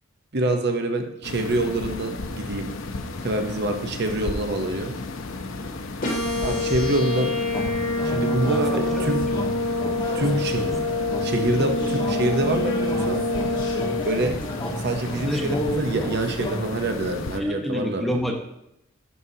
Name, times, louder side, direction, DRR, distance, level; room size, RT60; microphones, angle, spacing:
voice 1, 0.3-2.7 3.2-5.0 6.4-7.3 8.0-9.3 10.1-10.7 11.2-13.3 14.1-14.3 14.8-18.2, right 2 dB, 50° right, 5 dB, 0.7 m, -26 dB
sound 1, 1.2-17.4, left 2 dB, 70° left, 0.7 m, -34 dB
sound 2, 6.0-14.0, left 2 dB, 40° left, 2.3 m, -26 dB
sound 3, 7.5-16.6, equal, 20° left, 1.4 m, -32 dB
voice 2, 8.2-9.1 10.1-10.7 11.8-11.9 15.3-15.5 17.3-18.3, equal, ahead, 0 dB, 1.0 m, -30 dB
11.0 x 6.5 x 2.8 m, 0.81 s
head